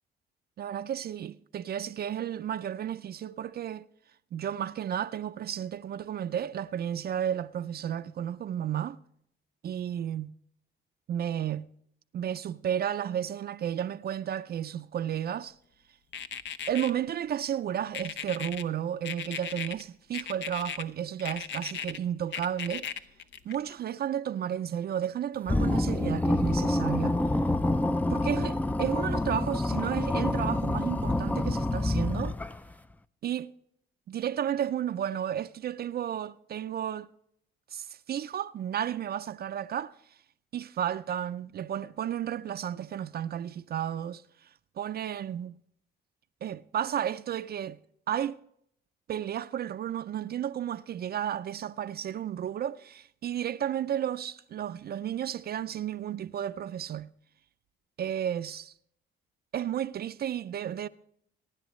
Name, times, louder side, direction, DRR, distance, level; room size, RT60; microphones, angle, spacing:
voice 1, 0.6-3.9 4.3-9.0 9.6-10.3 11.1-11.7 12.1-15.6 16.7-22.9 23.4-27.2 28.1-32.3 33.2-33.5 34.1-37.1 37.7-40.2 40.5-44.5 44.8-45.5 46.4-47.8 48.1-48.4 49.1-57.1 58.0-58.7 59.5-60.9, right 10 dB, 50° right, 0.4 m, -33 dB
sound 1, 16.1-16.9 17.9-18.6 19.0-19.8 20.1-20.8 21.2-22.0 22.3-23.7, left 8 dB, 65° left, 0.8 m, -36 dB
sound 2, 25.5-32.7, left 1 dB, 10° left, 0.4 m, -27 dB
23.0 x 10.5 x 3.1 m
cardioid pair, 90°, 20 cm